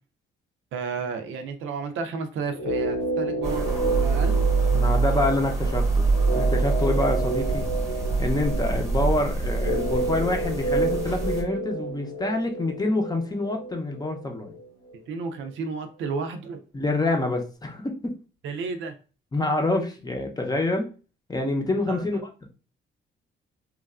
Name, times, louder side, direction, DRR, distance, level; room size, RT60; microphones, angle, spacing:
voice 1, 0.7-4.4 15.1-16.6 18.4-19.0 21.9-22.2, right 4 dB, 75° right, 7 dB, 0.5 m, -32 dB
sound 1, 2.5-14.6 14.9-15.0, right 2 dB, 75° left, 1.0 m, -31 dB
sound 2, 3.4-11.4, right 3 dB, 15° right, 1.0 m, -25 dB
voice 2, 4.7-6.0 6.3-7.6 8.2-14.5 16.7-18.1 19.3-20.9 21.3-22.2, left 2 dB, 20° left, 3 dB, 0.6 m, -26 dB
3.1 x 2.3 x 2.3 m, 0.35 s
cardioid pair, 90°, 20 cm